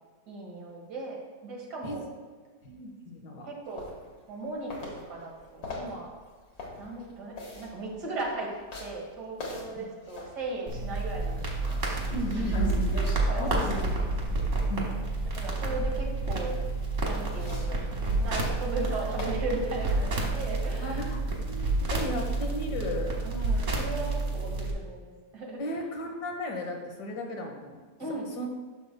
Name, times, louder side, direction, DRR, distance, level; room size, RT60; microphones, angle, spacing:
voice 1, 0.3-2.1 3.4-3.9 4.3-6.1 6.8-8.5 8.8-11.8 13.3-13.8 15.3-16.6 17.0-17.8 18.2-21.0 23.2-25.6 28.0-28.5, right 2 dB, 80° right, -1 dB, 2.1 m, -37 dB
voice 2, 2.6-3.5 9.8-9.9 12.1-13.1 13.4-13.8 14.7-14.9 20.7-21.2 21.5-23.2 25.6-27.8 28.3-28.5, left 1 dB, 85° left, 1 dB, 1.8 m, -35 dB
sound 1, 3.8-4.4 4.7-10.6 11.1-15.0 16.8-21.0, left 2 dB, 65° left, 2.0 m, -42 dB
sound 2, 10.7-24.7, right 2 dB, 50° right, 1.6 m, -29 dB
11.0 x 6.5 x 2.2 m, 1.5 s
omnidirectional pair, 1.8 m